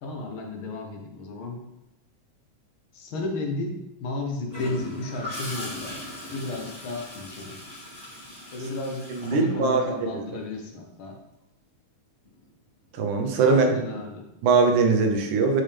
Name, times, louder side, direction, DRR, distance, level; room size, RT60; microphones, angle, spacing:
voice 1, 0.0-1.6 2.9-7.6 8.5-11.2 13.5-14.3, left 2 dB, 55° left, 1 dB, 1.6 m, -33 dB
Gurgling / Toilet flush, 4.5-10.2 12.2-12.5, left 1 dB, 15° left, 2.3 m, -39 dB
voice 2, 9.2-9.8 10.1-10.2 13.0-13.8 14.4-15.6, right 4 dB, 90° right, 3 dB, 2.4 m, -21 dB
8.9 x 5.2 x 3.4 m, 0.90 s
omnidirectional pair, 3.4 m